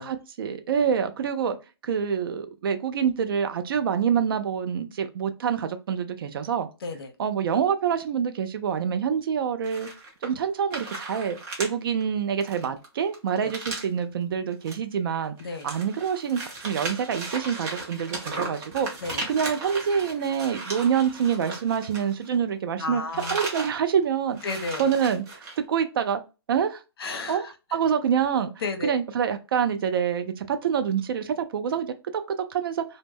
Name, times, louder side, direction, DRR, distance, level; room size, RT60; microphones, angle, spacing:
voice 1, 0.1-1.6 1.8-6.7 7.2-9.9 10.2-15.4 15.6-18.9 19.3-23.0 23.3-24.4 24.8-25.2 25.6-26.2 26.5-26.8 27.3-28.5 28.8-31.9 32.3-32.8, right 7 dB, 55° right, 0.4 m, -26 dB
voice 2, 6.8-7.1 13.4-13.5 15.4-15.7 19.0-19.2 22.8-23.4 24.4-24.9 27.0-27.5 28.6-28.9, left 3 dB, 60° left, 0.6 m, -32 dB
sound 1, 9.6-10.4 10.7-11.7 12.0-12.1 12.4-14.0 14.5-14.7 15.1-22.5 22.8-23.7 24.0-24.1 24.3-25.6, right 2 dB, 20° right, 0.7 m, -36 dB
2.0 x 2.0 x 3.3 m
hypercardioid pair, 140°, 14 cm